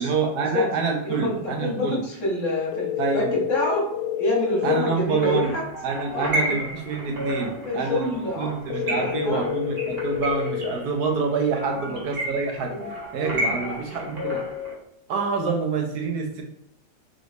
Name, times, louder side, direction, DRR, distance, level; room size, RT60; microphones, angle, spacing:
voice 1, 0.0-2.0 3.0-3.3 4.6-5.5 5.8-12.7 13.1-14.4 15.1-16.4, right 4 dB, 70° right, 2 dB, 1.2 m, -27 dB
voice 2, 1.0-3.9 4.2-5.6 6.1-6.6 7.4-8.5 8.8-9.4 11.7-12.0 12.7-12.9 13.4-13.8 14.1-14.4, left 2 dB, 50° left, -3 dB, 1.3 m, -28 dB
sound 1, 2.7-4.7 8.7-10.7, left 8 dB, 80° left, 1.2 m, -28 dB
sound 2, 5.0-14.7, equal, 40° right, 1.1 m, -32 dB
3.9 x 3.0 x 3.3 m, 0.76 s
omnidirectional pair, 1.8 m